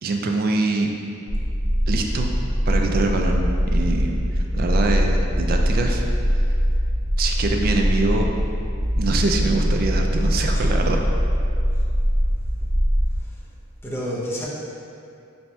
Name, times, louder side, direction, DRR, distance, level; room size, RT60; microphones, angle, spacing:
voice 1, 0.0-0.9 1.9-2.3 2.7-3.5 3.7-4.1 4.5-6.0 7.2-8.3 8.9-11.0, right 3 dB, 45° right, 2 dB, 0.3 m, -24 dB
sound 1, 1.3-13.2, equal, 65° right, 1.3 m, -22 dB
voice 2, 13.8-14.5, equal, 10° left, -6 dB, 0.6 m, -29 dB
3.1 x 2.7 x 4.4 m, 2.6 s
head